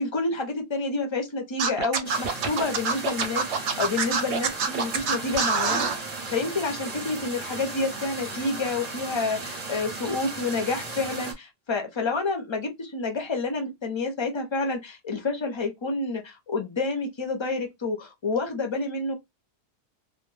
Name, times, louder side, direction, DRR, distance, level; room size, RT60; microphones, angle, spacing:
voice 1, 0.0-19.2, left 3 dB, 40° left, 0.4 m, -29 dB
Scratching (performance technique), 1.6-6.0, right 5 dB, 80° right, 0.9 m, -25 dB
sound 1, 2.0-11.3, right 3 dB, 40° right, 0.7 m, -36 dB
2.1 x 2.0 x 3.1 m
omnidirectional pair, 1.2 m